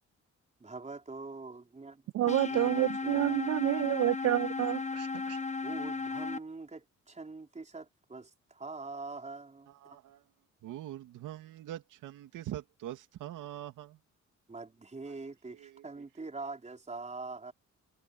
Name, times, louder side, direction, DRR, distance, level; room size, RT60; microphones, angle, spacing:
voice 1, 0.6-3.4 5.6-10.0 14.5-17.5, right 3 dB, 25° right, 4.3 m, -44 dB
voice 2, 2.1-5.4, right 14 dB, 55° right, 0.4 m, -29 dB
sound 1, 2.3-6.4, left 4 dB, 25° left, 1.2 m, -35 dB
voice 3, 9.8-10.2 10.6-14.0 15.6-15.8, right 13 dB, 85° right, 2.8 m, -43 dB
cardioid pair, 90°, 30 cm